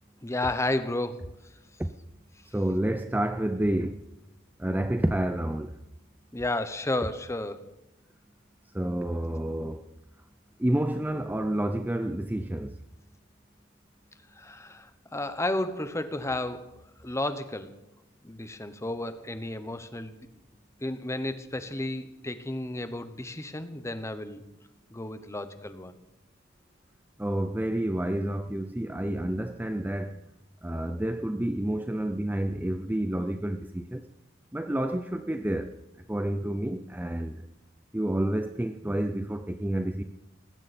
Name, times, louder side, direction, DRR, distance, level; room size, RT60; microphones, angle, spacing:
voice 1, 0.2-1.2 6.3-7.7 14.3-17.8 18.2-20.2 20.8-24.4 24.9-25.9, left 1 dB, 15° left, 1.0 m, -32 dB
voice 2, 2.5-4.0 4.6-5.7 8.7-9.8 10.6-12.8 27.2-30.2 30.6-34.0 34.5-35.7 36.1-37.4 37.9-40.0, right 1 dB, 10° right, 0.5 m, -29 dB
19.5 x 16.0 x 4.3 m
head